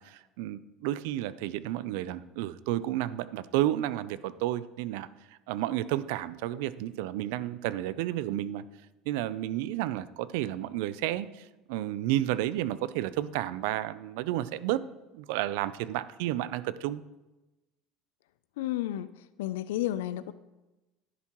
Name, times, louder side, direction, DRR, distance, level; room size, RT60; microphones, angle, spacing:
voice 1, 0.0-5.1 5.5-8.6 9.1-14.8 15.1-17.0, right 14 dB, 80° right, 16 dB, 0.4 m, -31 dB
voice 2, 18.6-19.1 19.4-20.3, left 13 dB, 90° left, 14 dB, 0.4 m, -31 dB
11.0 x 10.5 x 3.0 m, 1.1 s
supercardioid pair, 100°, 0 cm